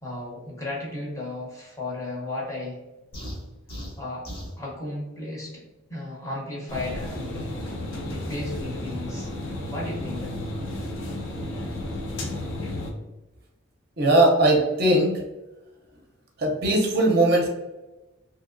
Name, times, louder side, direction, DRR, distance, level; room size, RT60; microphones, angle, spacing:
voice 1, 0.0-2.8 4.0-4.3 4.6-5.6 5.9-7.5 8.0-9.3 9.7-10.4, left 2 dB, 15° left, -4 dB, 0.7 m, -34 dB
sound 1, 3.1-4.6, equal, 45° left, 0.9 m, -37 dB
sound 2, 6.7-12.9, left 1 dB, 70° left, 0.6 m, -33 dB
voice 2, 14.0-15.1 16.4-17.5, right 1 dB, 50° right, 0 dB, 0.6 m, -19 dB
2.8 x 2.7 x 2.5 m, 1.1 s
head